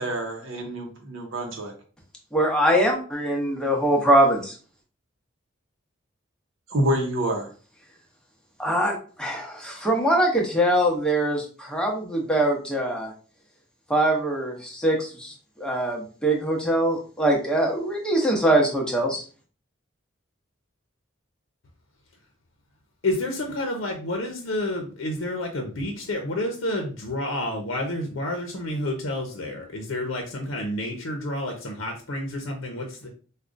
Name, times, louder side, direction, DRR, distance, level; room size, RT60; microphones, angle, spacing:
voice 1, 0.0-1.7 6.7-7.5, right 1 dB, 80° right, 0.7 m, -27 dB
voice 2, 2.3-4.5 8.6-13.1 13.9-15.3 15.6-19.2, right 1 dB, 5° left, 0.7 m, -23 dB
voice 3, 23.0-33.1, left 1 dB, 85° left, 0.6 m, -29 dB
4.8 x 2.2 x 2.5 m
head